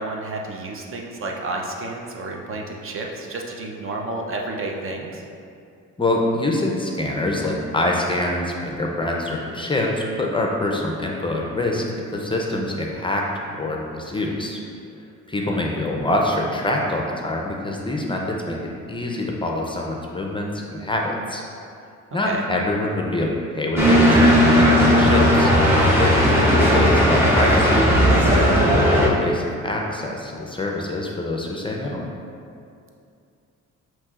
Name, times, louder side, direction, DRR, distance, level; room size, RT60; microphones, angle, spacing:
voice 1, 0.0-5.2 15.5-15.7 22.2-22.4, right 2 dB, 45° right, 0 dB, 0.6 m, -31 dB
voice 2, 6.0-11.9 12.1-13.3 13.6-14.6 15.3-21.4 22.1-25.5 26.0-32.0, left 1 dB, 15° left, -1 dB, 0.5 m, -25 dB
sound 1, 23.8-29.1, equal, 10° right, 1.0 m, -16 dB
7.2 x 3.0 x 2.4 m, 2.5 s
cardioid pair, 90°, 30 cm